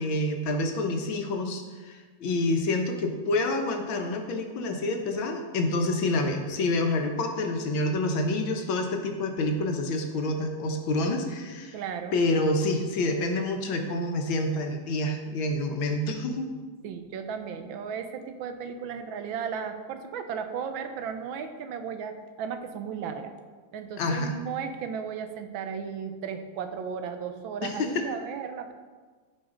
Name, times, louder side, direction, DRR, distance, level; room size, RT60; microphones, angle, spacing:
voice 1, 0.0-11.8 12.1-16.5 24.0-24.3 27.6-28.1, left 2 dB, 80° left, 4 dB, 1.8 m, -28 dB
voice 2, 11.7-12.2 16.8-23.3 23.7-28.7, right 7 dB, 80° right, 7 dB, 1.5 m, -35 dB
15.0 x 5.1 x 3.8 m, 1.4 s
omnidirectional pair, 2.1 m